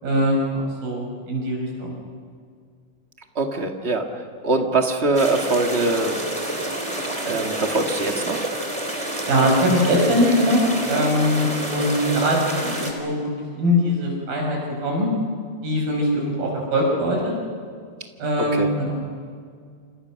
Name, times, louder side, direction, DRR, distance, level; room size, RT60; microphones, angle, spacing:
voice 1, 0.0-1.9 9.3-13.3 13.5-15.1 15.6-17.3 18.2-18.9, equal, 85° right, 0 dB, 7.8 m, -22 dB
voice 2, 3.3-4.0 4.4-6.3 6.9-7.0 7.3-8.5 18.5-18.7, right 3 dB, 25° right, 4 dB, 1.4 m, -23 dB
sound 1, 5.1-12.9, right 1 dB, 10° right, 3.4 m, -28 dB
28.5 x 27.0 x 6.4 m, 2.1 s
omnidirectional pair, 3.9 m